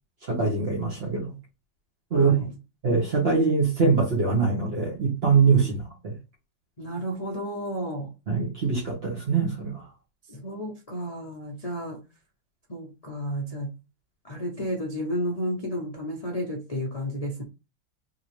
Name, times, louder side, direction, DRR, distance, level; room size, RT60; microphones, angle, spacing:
voice 1, 0.2-1.3 2.1-2.3 2.8-6.2 8.3-9.8, right 4 dB, 35° right, 1.2 m, -23 dB
voice 2, 2.1-2.6 5.5-5.7 6.8-8.1 10.3-12.1 12.7-13.7 14.2-17.4, equal, 50° left, 0.4 m, -32 dB
3.8 x 2.9 x 3.0 m
omnidirectional pair, 2.1 m